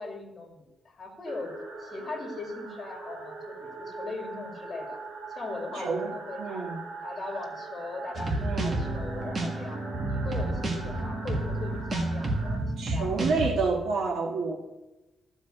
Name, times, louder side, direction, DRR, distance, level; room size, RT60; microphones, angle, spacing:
voice 1, 0.0-5.0 5.3-6.7 7.0-9.8 10.1-13.3, left 3 dB, 25° left, 1 dB, 2.2 m, -39 dB
sound 1, 1.3-12.6, right 3 dB, 55° right, 3.2 m, -42 dB
voice 2, 5.7-6.1 6.4-6.8 8.4-8.9 12.8-14.6, right 4 dB, 85° right, 1 dB, 1.6 m, -29 dB
sound 2, 8.1-13.5, right 2 dB, 30° right, 1.6 m, -30 dB
12.5 x 5.3 x 7.9 m, 1.0 s
wide cardioid pair, 175°, 0 cm